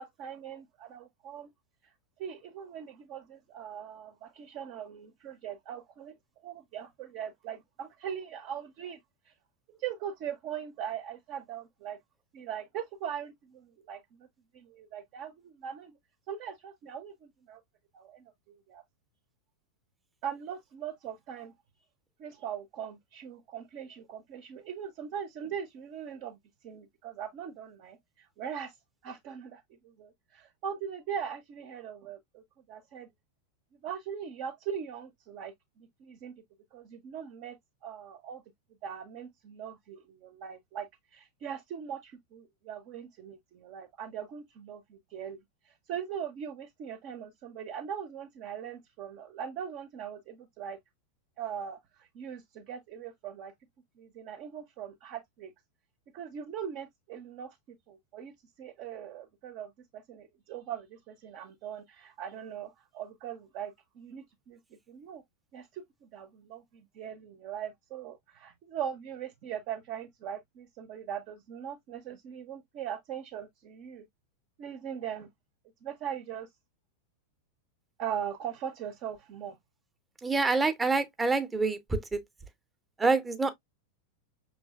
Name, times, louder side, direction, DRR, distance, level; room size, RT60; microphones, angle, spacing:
voice 1, 0.0-1.5 2.2-6.1 6.4-9.0 9.3-9.4 9.8-12.0 12.3-14.3 14.5-15.9 16.3-17.6 17.9-18.3 18.7-18.8 20.2-21.5 22.2-26.4 26.6-28.0 28.4-28.7 29.0-32.4 32.7-33.1 33.8-36.3 36.7-37.6 37.8-38.4 38.8-40.9 41.1-45.4 45.9-50.8 51.4-51.8 52.1-53.5 54.0-55.5 56.1-58.3 58.6-64.6 64.9-65.2 65.5-74.0 74.6-75.3 75.8-76.5 78.0-79.6, right 8 dB, 40° right, 0.9 m, -40 dB
voice 2, 80.2-82.2 83.0-83.5, right 3 dB, 15° right, 0.9 m, -27 dB
6.2 x 3.1 x 2.3 m
figure-of-eight pair, 90°, 0 cm